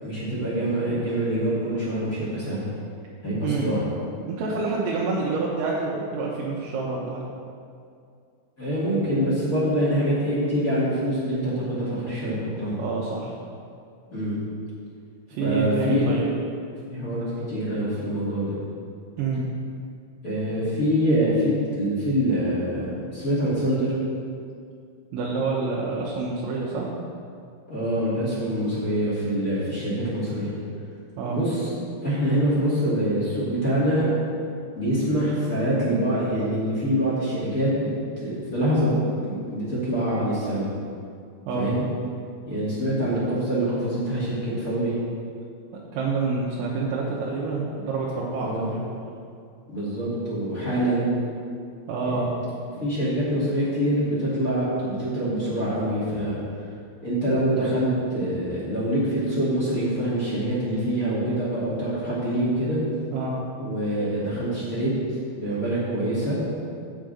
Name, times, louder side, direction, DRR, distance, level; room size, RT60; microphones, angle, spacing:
voice 1, 0.0-2.6 3.2-3.8 8.6-12.8 14.1-14.4 15.4-16.1 16.9-18.5 20.2-23.9 27.7-30.5 31.3-31.7 32.0-34.1 34.7-37.9 38.2-38.9 39.2-40.7 41.5-41.8 42.5-44.9 48.4-48.7 49.7-51.1 52.0-52.2 52.7-56.3 57.0-62.8 63.6-64.9 65.3-66.4, equal, 30° left, -8 dB, 1.5 m, -25 dB
voice 2, 4.2-7.2 12.8-13.4 15.3-16.3 19.2-19.4 25.1-26.9 31.2-31.4 41.5-41.7 45.9-48.9 51.9-52.3 63.1-63.3, right 4 dB, 75° right, -5 dB, 3.1 m, -27 dB
8.4 x 5.1 x 7.7 m, 2.3 s
omnidirectional pair, 5.4 m